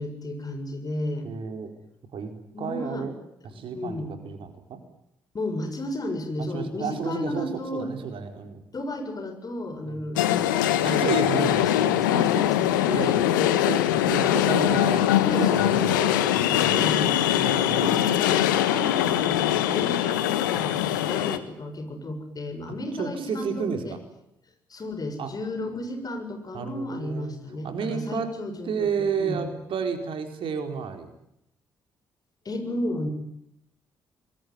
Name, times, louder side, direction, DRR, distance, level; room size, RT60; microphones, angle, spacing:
voice 1, 0.0-1.3 2.5-3.1 3.5-4.2 5.3-7.9 8.7-13.6 14.2-14.7 15.2-17.3 17.7-24.0 24.7-28.9 29.2-29.4 32.5-33.1, left 1 dB, 35° left, 7 dB, 7.0 m, -33 dB
voice 2, 1.2-1.7 2.1-2.3 2.6-3.2 3.5-4.8 6.4-8.6 9.8-10.0 10.8-12.0 12.3-12.4 12.9-16.9 17.3-18.1 18.8-19.2 19.5-19.7 23.0-24.0 25.2-25.3 26.5-27.4 27.6-28.3 28.7-31.1, right 6 dB, 55° right, 6 dB, 4.5 m, -32 dB
sound 1, 10.2-21.4, left 12 dB, 80° left, 1.4 m, -22 dB
26.5 x 22.0 x 9.7 m, 0.80 s
figure-of-eight pair, 45°, 10 cm